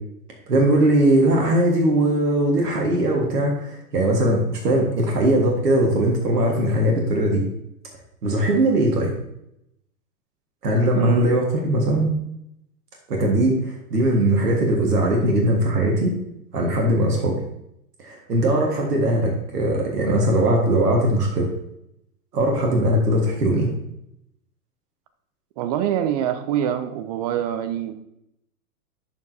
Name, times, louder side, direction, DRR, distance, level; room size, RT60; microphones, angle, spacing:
voice 1, 0.5-7.4 8.2-9.1 10.6-12.1 13.1-16.1 16.5-17.3 18.0-21.5 22.3-23.7, right 1 dB, 85° right, 0 dB, 1.6 m, -20 dB
voice 2, 11.0-11.3 25.6-27.9, right 10 dB, 30° right, 11 dB, 0.3 m, -25 dB
11.0 x 4.8 x 2.7 m, 0.80 s
hypercardioid pair, 105°, 46 cm